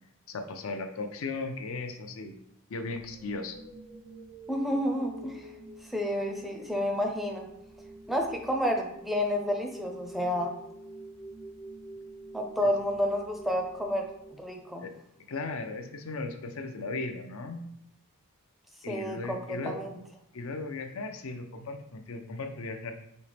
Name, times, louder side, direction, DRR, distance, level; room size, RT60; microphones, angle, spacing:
voice 1, 0.3-2.4 2.7-3.6 12.6-12.7 14.8-14.9 15.3-17.6 18.8-19.8 20.3-23.0, left 3 dB, 75° left, 6 dB, 0.5 m, -36 dB
sound 1, 2.9-14.9, right 1 dB, 90° right, 1.4 m, -47 dB
voice 2, 4.5-5.5 5.9-7.5 8.1-10.5 12.3-14.0 14.4-14.8 18.9-20.0, equal, ahead, 2 dB, 0.5 m, -30 dB
5.2 x 2.8 x 3.4 m, 0.76 s
head